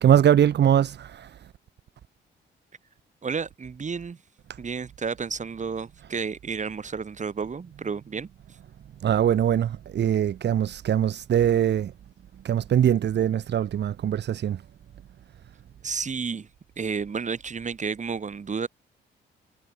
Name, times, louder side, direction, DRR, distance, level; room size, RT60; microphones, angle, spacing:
voice 1, 0.0-1.4 9.0-11.9 12.4-14.6, right 10 dB, 60° right, 1.7 m, -22 dB
voice 2, 3.2-4.2 4.6-8.3 15.8-16.5 16.8-18.7, right 5 dB, 35° right, 6.2 m, -31 dB
cardioid pair, 90°, 20 cm